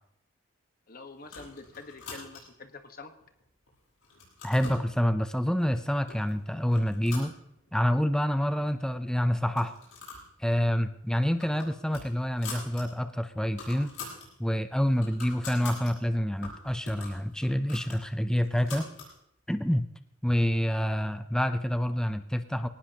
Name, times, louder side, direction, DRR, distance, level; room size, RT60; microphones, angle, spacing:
voice 1, 0.9-3.1, left 3 dB, 45° left, 6 dB, 1.3 m, -46 dB
sound 1, 1.2-2.7 3.2-3.7 4.0-4.9 5.6-5.7 6.1-6.3 6.7-7.9 8.3-8.4 8.6-8.7 9.4-10.3 10.6-10.8 11.2-12.8 13.2-13.3 13.5-14.3 14.7-15.9 16.4-19.1, left 3 dB, 85° left, 7.8 m, -44 dB
voice 2, 4.4-7.3 7.7-9.7 10.4-13.9 14.4-18.9 19.5-19.9 20.2-22.7, equal, 5° left, 9 dB, 0.5 m, -27 dB
22.0 x 18.5 x 2.9 m, 0.78 s
head